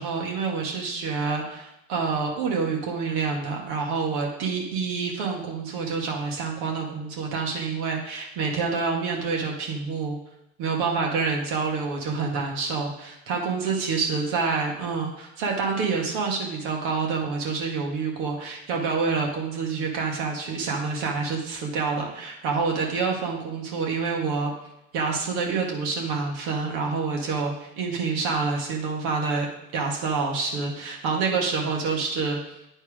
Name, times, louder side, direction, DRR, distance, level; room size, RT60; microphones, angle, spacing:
voice 1, 0.0-10.2 10.6-24.5 24.9-29.5 29.7-32.4, right 4 dB, 70° right, 0 dB, 2.1 m, -27 dB
9.3 x 4.4 x 5.0 m, 0.85 s
supercardioid pair, 100°, 38 cm